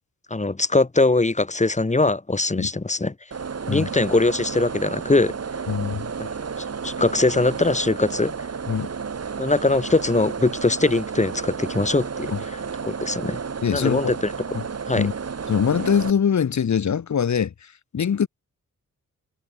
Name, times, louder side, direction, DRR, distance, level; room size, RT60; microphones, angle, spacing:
voice 1, 0.3-3.1 3.7-5.3 6.2-6.3 6.8-8.5 9.4-12.3 12.8-13.4 13.7-14.2 14.9-15.1, left 2 dB, 25° left, 3.3 m, -21 dB
sound 1, 3.3-16.1, right 6 dB, 50° right, 4.6 m, -32 dB
voice 2, 5.7-6.1 8.7-8.9 12.3-12.4 13.6-14.1 14.5-14.6 15.0-15.1 15.5-18.3, left 7 dB, 65° left, 2.6 m, -23 dB
cardioid pair, 95°, 31 cm